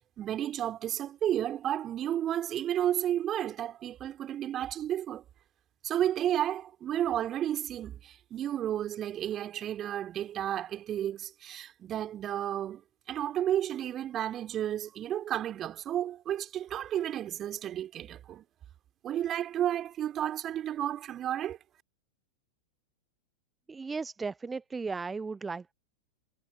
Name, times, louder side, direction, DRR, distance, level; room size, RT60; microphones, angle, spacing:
voice 1, 0.2-5.2 5.8-12.8 13.1-18.4 19.0-21.6, right 11 dB, 30° right, 2.8 m, -32 dB
voice 2, 23.7-25.7, right 4 dB, 15° right, 0.5 m, -36 dB
figure-of-eight pair, 90°, 0 cm